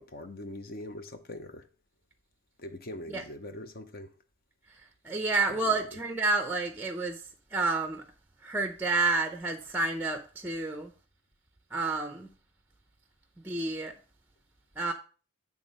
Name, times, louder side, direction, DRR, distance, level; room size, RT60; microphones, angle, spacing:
voice 1, 0.0-1.7 2.6-4.1 5.5-5.7, left 1 dB, 45° left, 0.7 m, -42 dB
voice 2, 5.0-7.2 7.5-8.0 8.4-10.9 11.7-12.3 13.4-13.9 14.8-14.9, right 3 dB, 10° right, 0.5 m, -29 dB
8.9 x 3.5 x 5.3 m
head